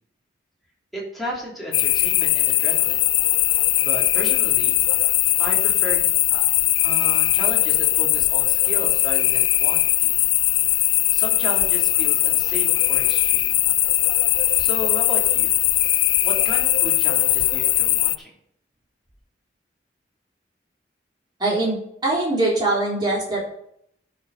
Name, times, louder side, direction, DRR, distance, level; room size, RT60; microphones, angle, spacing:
voice 1, 0.9-3.0 3.8-4.8 5.4-6.0 6.3-6.4 6.8-10.1 11.1-13.6 14.6-15.5 16.2-18.3, equal, ahead, -5 dB, 3.1 m, -34 dB
sound 1, 1.7-18.2, left 17 dB, 80° left, 0.4 m, -20 dB
voice 2, 21.4-23.4, right 2 dB, 25° right, -4 dB, 3.9 m, -22 dB
14.0 x 5.2 x 4.8 m, 0.71 s
head